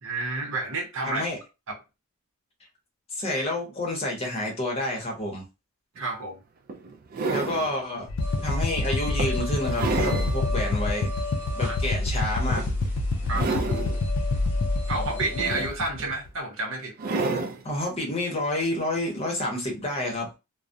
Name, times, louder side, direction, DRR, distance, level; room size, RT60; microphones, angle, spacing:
voice 1, 0.0-1.2 1.7-1.8 6.0-6.4 11.7-11.8 13.3-13.7 14.9-16.9, right 3 dB, 60° right, 0.8 m, -30 dB
voice 2, 1.0-1.4 3.1-5.4 7.3-8.1 8.4-11.1 11.6-12.7 17.3-20.3, left 1 dB, 30° left, 0.8 m, -29 dB
sound 1, 6.0-6.1 6.7-7.7 8.4-8.6 9.2-10.4 10.8-10.9 12.5-12.9 13.2-14.0 15.2-16.1 17.0-17.6 19.0-19.1, right 3 dB, 40° right, 0.3 m, -30 dB
sound 2, 8.1-16.3, left 2 dB, 65° left, 0.4 m, -27 dB
sound 3, 8.2-15.7, left 4 dB, 10° right, 0.8 m, -37 dB
2.3 x 2.0 x 2.6 m
head